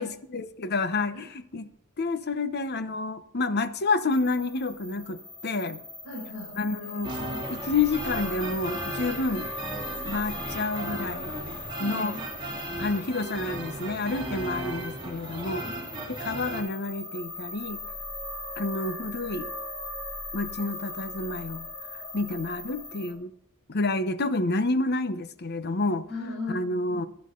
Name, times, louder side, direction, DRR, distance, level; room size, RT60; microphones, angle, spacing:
voice 1, 0.0-1.7 2.0-5.8 6.5-7.1 7.5-9.5 10.0-11.3 11.8-12.2 12.8-15.7 16.1-17.8 18.6-19.5 20.3-21.7 22.1-23.3 23.7-26.0 26.5-27.0, left 3 dB, 50° left, 0.9 m, -29 dB
sound 1, 4.1-23.1, left 2 dB, 25° left, 2.8 m, -39 dB
voice 2, 6.0-6.5 6.8-7.4 11.8-12.2 15.6-16.1 26.1-27.0, left 2 dB, 70° left, 5.4 m, -38 dB
sound 2, 7.0-16.6, right 1 dB, 25° right, 3.2 m, -36 dB
15.0 x 11.5 x 3.8 m
head